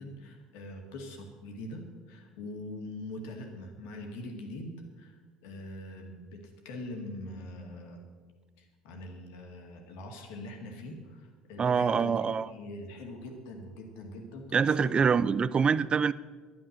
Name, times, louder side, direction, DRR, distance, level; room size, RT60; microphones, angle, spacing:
voice 1, 0.0-8.0 8.6-15.0 15.4-15.5, left 1 dB, 60° left, 3 dB, 2.1 m, -43 dB
voice 2, 11.6-12.5 14.5-16.1, right 6 dB, 30° right, 18 dB, 0.5 m, -25 dB
11.0 x 11.0 x 6.5 m, 1.4 s
figure-of-eight pair, 60°, 3 cm